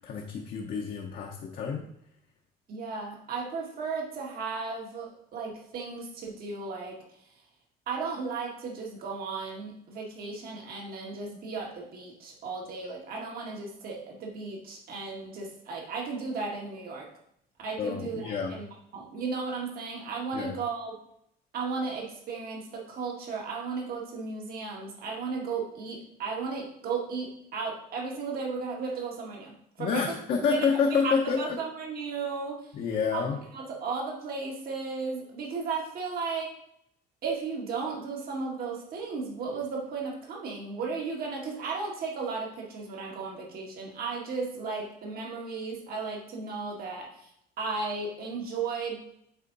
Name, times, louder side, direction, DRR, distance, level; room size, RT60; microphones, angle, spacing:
voice 1, 0.0-1.8 17.8-18.5 20.3-20.6 29.8-31.6 32.7-33.4, left 6 dB, 60° left, 0 dB, 0.9 m, -28 dB
voice 2, 2.7-7.0 7.9-17.1 17.6-18.7 18.9-20.9 21.5-30.0 30.5-32.7 33.1-33.2 33.5-36.5 37.2-47.3 47.6-49.1, right 4 dB, 60° right, -1 dB, 1.9 m, -35 dB
8.1 x 3.7 x 4.0 m, 0.73 s
cardioid pair, 110°, 17 cm